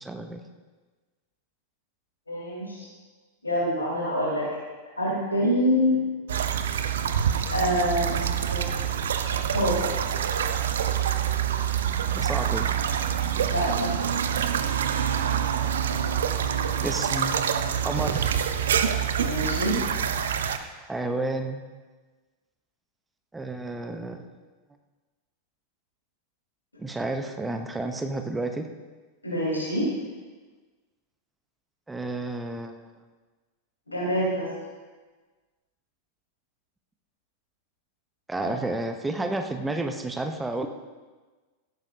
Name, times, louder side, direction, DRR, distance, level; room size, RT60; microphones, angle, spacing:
voice 1, 0.0-0.4 12.1-12.7 16.8-17.3 17.8-18.4 20.8-21.6 23.3-24.2 26.8-28.7 31.9-32.9 38.3-40.7, right 2 dB, 10° right, 6 dB, 0.9 m, -31 dB
voice 2, 2.3-2.8 3.4-4.5 5.0-6.0 7.5-8.7 9.5-9.8 13.5-14.0 19.2-19.8 29.2-29.9 33.9-34.5 38.4-38.5, equal, 80° left, -6 dB, 4.6 m, -26 dB
sound 1, 6.3-20.6, right 8 dB, 65° right, 0.7 m, -26 dB
16.0 x 12.5 x 2.8 m, 1.3 s
figure-of-eight pair, 90°, 0 cm